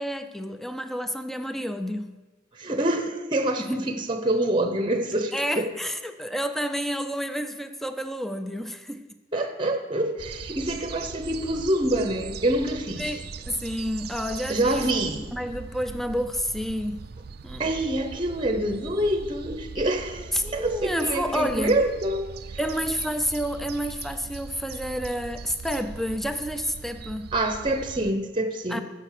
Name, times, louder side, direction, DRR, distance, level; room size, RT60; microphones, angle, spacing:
voice 1, 0.0-2.1 3.7-3.9 5.3-9.0 13.0-14.9 15.3-17.0 17.4-17.6 20.3-21.8 22.6-27.3 28.7-28.8, equal, ahead, 9 dB, 0.5 m, -29 dB
voice 2, 2.6-5.7 9.3-13.1 14.5-15.3 17.6-22.3 27.3-28.8, right 1 dB, 25° right, 7 dB, 0.8 m, -26 dB
sound 1, 10.2-28.1, right 5 dB, 55° right, 0.4 m, -40 dB
15.0 x 5.3 x 6.6 m, 1.2 s
head